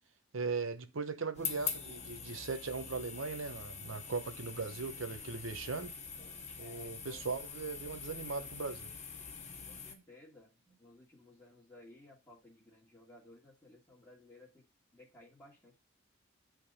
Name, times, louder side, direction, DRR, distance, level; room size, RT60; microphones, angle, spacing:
voice 1, 0.3-5.9 6.6-8.9, right 4 dB, 85° right, 0.8 m, -39 dB
sound 1, 1.3-9.9, left 6 dB, 35° left, 1.3 m, -44 dB
voice 2, 6.6-7.2 9.7-14.6 14.9-15.8, left 1 dB, 15° left, 1.7 m, -58 dB
8.7 x 3.8 x 5.3 m
head